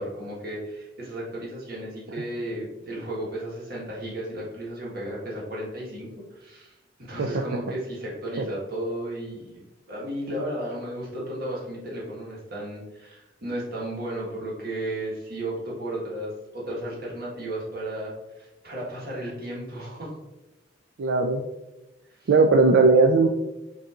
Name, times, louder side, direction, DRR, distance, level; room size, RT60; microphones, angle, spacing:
voice 1, 0.0-20.2 22.2-22.3, right 1 dB, 50° right, -4 dB, 1.3 m, -34 dB
voice 2, 21.0-21.4 22.3-23.3, right 3 dB, 70° right, 2 dB, 0.3 m, -18 dB
5.2 x 2.7 x 2.4 m, 1.0 s
head